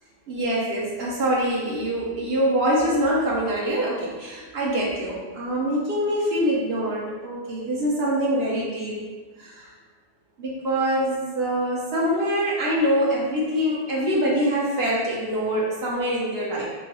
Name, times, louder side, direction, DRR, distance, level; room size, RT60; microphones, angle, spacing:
voice 1, 0.3-9.1 9.4-9.7 10.4-16.7, equal, 75° right, -4 dB, 0.9 m, -24 dB
3.4 x 2.6 x 2.6 m, 1.4 s
omnidirectional pair, 1.1 m